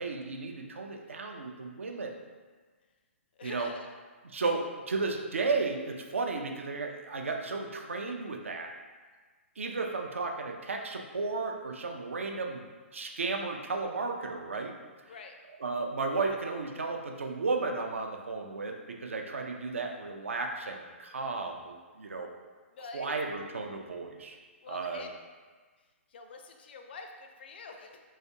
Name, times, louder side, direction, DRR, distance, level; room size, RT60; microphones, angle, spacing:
voice 1, 0.0-2.1 3.4-3.7 4.3-8.7 9.6-12.7 12.9-14.7 15.6-22.3 22.9-24.4 24.7-25.1, right 3 dB, 70° right, 3 dB, 0.4 m, -34 dB
voice 2, 3.4-3.9 15.1-15.4 22.7-23.4 24.6-25.1 26.1-28.0, left 4 dB, 50° left, 4 dB, 0.4 m, -46 dB
3.1 x 2.8 x 2.7 m, 1.4 s
figure-of-eight pair, 120°, 7 cm